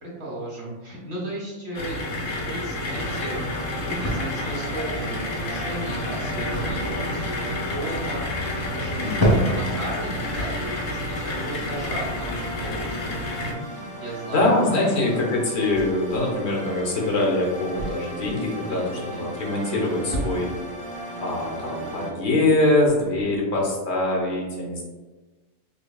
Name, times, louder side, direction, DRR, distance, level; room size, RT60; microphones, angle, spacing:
voice 1, 0.0-3.4 3.7-15.3 18.7-19.3 21.4-22.1, right 1 dB, 60° right, -4 dB, 1.4 m, -35 dB
sound 1, 1.7-13.5, left 2 dB, 85° left, 1.0 m, -30 dB
sound 2, 2.9-22.1, right 2 dB, 35° right, 0.9 m, -37 dB
sound 3, 4.0-21.9, equal, 20° left, 0.6 m, -33 dB
voice 2, 9.0-9.8 14.3-20.5 21.2-24.8, left 2 dB, 65° left, -1 dB, 1.2 m, -23 dB
5.2 x 2.3 x 2.3 m, 1.2 s
omnidirectional pair, 1.3 m